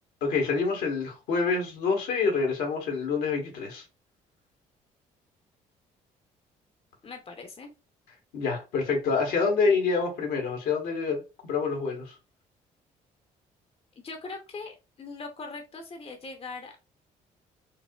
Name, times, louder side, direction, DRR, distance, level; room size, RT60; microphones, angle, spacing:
voice 1, 0.2-3.8 8.3-12.2, left 4 dB, 75° left, 1.2 m, -27 dB
voice 2, 7.0-7.7 14.0-16.8, left 3 dB, 35° left, 0.8 m, -40 dB
4.5 x 2.0 x 2.3 m
supercardioid pair, 60°, 17 cm